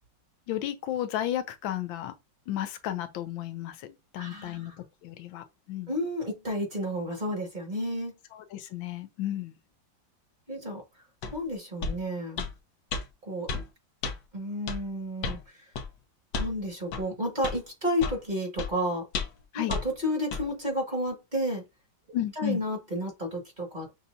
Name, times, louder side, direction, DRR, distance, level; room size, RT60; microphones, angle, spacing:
voice 1, 0.5-2.1 2.5-5.9 8.3-9.5 19.5-19.7 22.1-22.6, left 12 dB, 90° left, 1.4 m, -33 dB
voice 2, 4.1-4.8 5.9-8.1 10.5-10.8 11.3-12.4 13.2-13.5 14.3-15.7 16.4-19.1 19.5-21.6 22.4-23.9, equal, 25° right, 1.6 m, -31 dB
sound 1, 11.2-11.4 11.8-12.0 12.4-12.5 12.9-13.0 13.5-13.7 14.0-14.2 14.7-14.8 15.2-15.4 15.8-15.9 16.3-16.5 16.9-17.0 17.4-17.6 18.0-18.2 18.6-18.7 19.1-19.4 19.7-19.8 20.3-20.4, left 4 dB, 65° left, 1.4 m, -32 dB
6.5 x 2.8 x 2.5 m
omnidirectional pair, 2.0 m